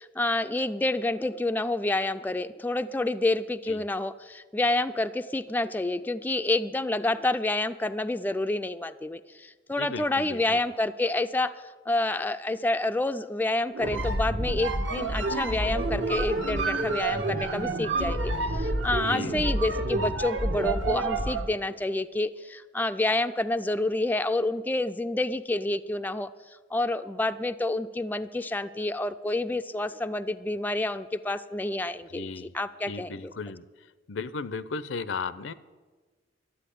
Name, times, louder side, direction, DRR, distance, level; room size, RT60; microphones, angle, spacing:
voice 1, 0.0-11.5 11.9-26.3 26.7-33.3, left 2 dB, 10° left, 9 dB, 0.3 m, -28 dB
voice 2, 9.8-10.6 19.0-19.4 32.1-32.5 32.9-33.7 34.1-35.5, left 4 dB, 75° left, 16 dB, 0.6 m, -35 dB
sound 1, 13.7-21.5, right 2 dB, 70° right, 1.4 m, -28 dB
12.5 x 8.3 x 10.0 m, 1.4 s
head